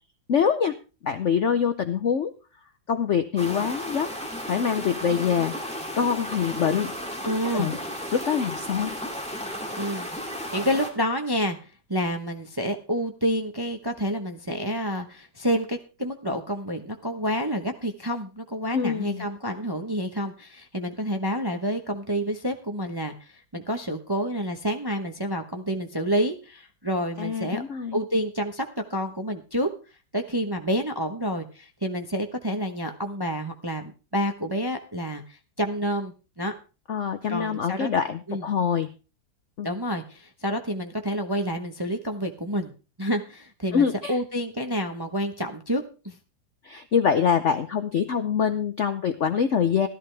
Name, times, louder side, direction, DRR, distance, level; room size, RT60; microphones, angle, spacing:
voice 1, 0.3-0.8 1.0-2.3 2.9-4.1 4.5-5.5 5.9-6.9 7.5-7.8 8.1-8.9 18.7-19.3 27.2-28.0 36.9-38.9 39.6-39.7 43.7-44.2 46.6-49.9, left 7 dB, 60° left, 9 dB, 0.7 m, -24 dB
sound 1, 3.4-10.9, equal, 5° left, 2.4 m, -34 dB
voice 2, 7.2-7.7 9.8-10.1 10.5-11.6 11.9-27.6 27.9-29.7 30.1-36.5 37.3-37.9 38.3-38.4 39.6-42.7 43.0-46.2, equal, 20° right, 5 dB, 0.7 m, -28 dB
13.5 x 13.5 x 3.4 m, 0.33 s
omnidirectional pair, 2.1 m